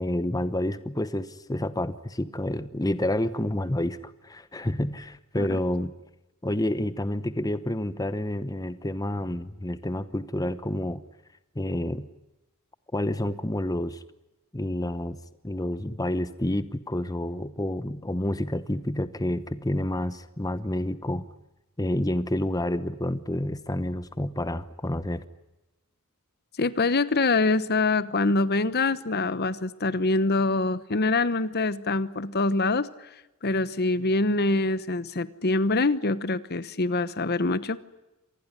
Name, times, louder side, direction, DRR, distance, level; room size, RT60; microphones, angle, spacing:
voice 1, 0.0-5.9 6.4-11.0 11.5-12.1 12.9-14.0 14.5-15.2 15.4-21.3 21.8-25.2, left 1 dB, 15° left, 13 dB, 1.0 m, -29 dB
voice 2, 26.6-33.1 33.4-37.8, left 3 dB, 45° left, 15 dB, 1.0 m, -25 dB
27.0 x 20.0 x 9.7 m, 0.98 s
head